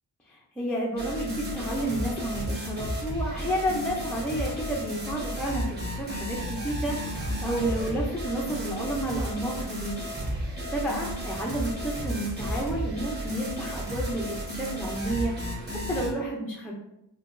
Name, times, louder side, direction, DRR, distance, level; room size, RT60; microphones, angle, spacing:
voice 1, 0.3-10.0 10.3-16.7, right 1 dB, 5° left, -3 dB, 0.3 m, -31 dB
sound 1, 1.0-16.1, equal, 20° right, 1.3 m, -33 dB
4.6 x 2.2 x 2.4 m, 0.86 s
wide cardioid pair, 160°, 44 cm